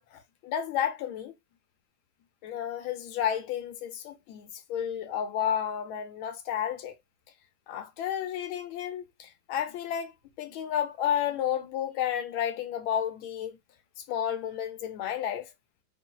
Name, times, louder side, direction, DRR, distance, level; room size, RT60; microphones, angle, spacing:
voice 1, 0.0-1.3 2.4-7.0 7.7-10.1 10.4-13.6 14.0-15.5, left 9 dB, 80° left, 1.4 m, -32 dB
4.2 x 2.0 x 2.2 m
omnidirectional pair, 2.2 m